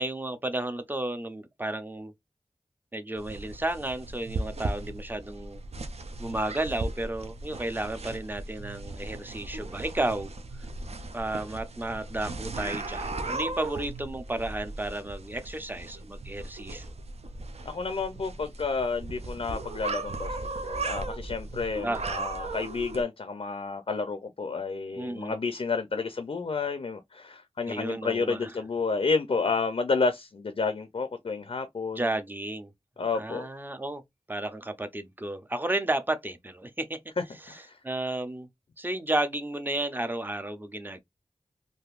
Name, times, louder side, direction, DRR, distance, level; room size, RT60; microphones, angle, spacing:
voice 1, 0.0-2.1 2.9-5.6 6.2-10.3 11.1-16.9 21.8-22.2 25.0-25.4 27.7-28.5 31.9-32.7 33.1-34.0 34.3-37.0 37.5-38.5 38.8-41.0, right 1 dB, 15° right, 0.5 m, -32 dB
sound 1, 3.2-23.0, right 2 dB, 70° right, 0.5 m, -37 dB
voice 2, 17.6-32.2 33.0-33.5 37.2-37.8, left 4 dB, 55° left, 0.5 m, -30 dB
3.4 x 2.6 x 2.4 m
wide cardioid pair, 55°, 11 cm